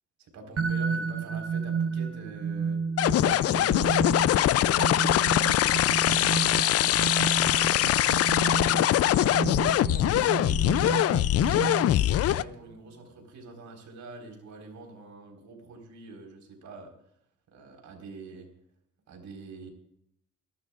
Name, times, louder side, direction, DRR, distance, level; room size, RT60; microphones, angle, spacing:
voice 1, 0.2-2.8 3.1-6.2 7.1-7.8 8.8-9.4 9.8-16.9 17.5-18.5 19.1-19.7, right 3 dB, 70° right, 2 dB, 4.5 m, -45 dB
sound 1, 0.6-12.3, right 6 dB, 50° right, 1.2 m, -32 dB
sound 2, 3.0-12.4, left 13 dB, 55° left, 0.4 m, -23 dB
25.0 x 12.5 x 2.5 m, 0.73 s
cardioid pair, 90°, 30 cm